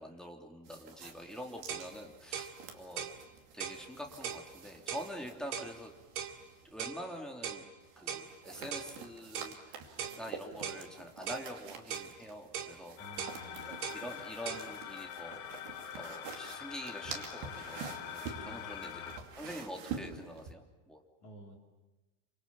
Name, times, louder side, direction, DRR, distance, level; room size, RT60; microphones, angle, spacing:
voice 1, 0.0-3.1 3.5-5.9 6.6-7.7 8.0-13.4 13.6-15.4 15.9-21.0, equal, ahead, 1 dB, 2.0 m, -46 dB
sound 1, 0.7-6.8 7.8-20.5, right 6 dB, 65° right, 4.5 m, -48 dB
sound 2, 1.3-1.4 1.7-1.9 2.3-2.5 3.0-3.2 3.6-3.8 4.2-4.5 4.9-5.1 5.5-5.7 6.2-6.4 6.8-7.0 7.4-7.7 8.1-8.3 8.7-8.9 9.4-9.6 10.0-10.2 10.6-10.8 11.3-11.5 11.9-12.1 12.5-12.8 13.2-13.4 13.8-14.0 14.5-14.7, right 8 dB, 85° right, 4.5 m, -39 dB
sound 3, 13.0-19.2, left 10 dB, 70° left, 3.1 m, -44 dB
voice 2, 13.0-13.7 18.4-19.2 21.2-21.6, equal, 45° left, 1 dB, 4.0 m, -53 dB
29.0 x 26.0 x 7.3 m, 1.1 s
omnidirectional pair, 5.3 m